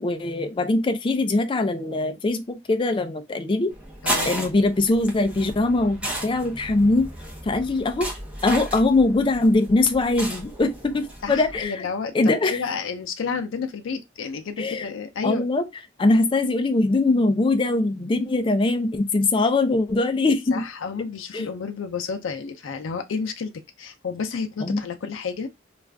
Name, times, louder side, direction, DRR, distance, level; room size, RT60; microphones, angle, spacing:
voice 1, 0.0-3.7 4.2-7.1 7.4-8.1 8.4-11.9 12.1-12.6 14.6-14.9 15.2-15.7 16.0-20.6 21.3-21.5 24.6-24.8, left 2 dB, 25° left, 0.4 m, -22 dB
sound 1, 3.7-11.6, equal, 5° right, 0.8 m, -34 dB
voice 2, 4.0-4.4 11.2-12.1 12.4-15.4 20.5-23.5 23.8-25.5, left 5 dB, 90° left, 0.5 m, -30 dB
2.4 x 2.4 x 3.3 m
head